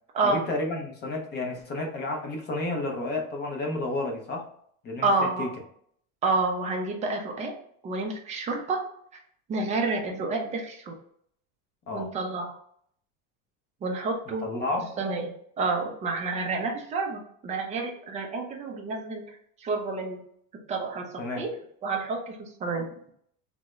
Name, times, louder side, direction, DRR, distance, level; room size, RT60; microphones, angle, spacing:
voice 1, 0.2-4.5 4.8-5.6 11.9-12.1 14.4-14.9 21.2-21.5, left 2 dB, 25° left, 1 dB, 0.6 m, -31 dB
voice 2, 5.0-5.5 6.2-7.5 7.8-8.8 9.5-11.0 11.9-12.5 13.8-14.4 15.0-15.3 15.6-19.3 19.6-20.2 20.7-21.5 21.8-22.9, right 3 dB, 20° right, 1 dB, 0.4 m, -29 dB
3.5 x 2.1 x 3.0 m, 0.65 s
cardioid pair, 150°, 40 cm